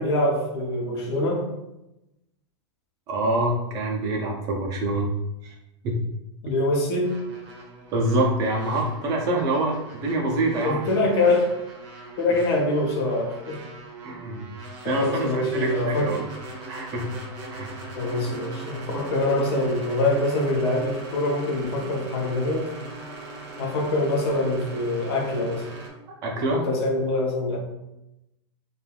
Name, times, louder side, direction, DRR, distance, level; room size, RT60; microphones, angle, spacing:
voice 1, 0.0-1.5 6.4-7.2 10.6-11.5 12.2-13.6 14.8-16.2 18.0-22.7 23.6-25.7 26.5-27.6, left 2 dB, 60° left, 0 dB, 0.7 m, -24 dB
voice 2, 3.1-5.1 5.4-5.5 5.8-6.0 7.9-10.9 14.0-14.5 14.9-16.3 16.7-17.2 17.5-17.8 26.2-26.6, right 2 dB, 25° right, 0 dB, 0.3 m, -26 dB
sound 1, 7.0-25.9, right 2 dB, 40° right, 0.7 m, -40 dB
3.2 x 2.2 x 2.3 m, 0.91 s
supercardioid pair, 160°, 15 cm